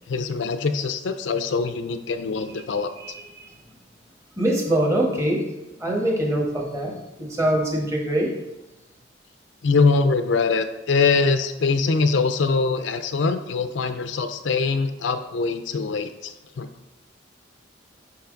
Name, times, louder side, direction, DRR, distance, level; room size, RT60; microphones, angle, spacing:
voice 1, 0.1-2.9 9.6-16.7, left 4 dB, 70° left, 9 dB, 0.5 m, -23 dB
voice 2, 4.4-5.5 5.8-8.3, right 1 dB, 15° right, 0 dB, 1.1 m, -23 dB
5.7 x 5.2 x 3.8 m, 0.96 s
head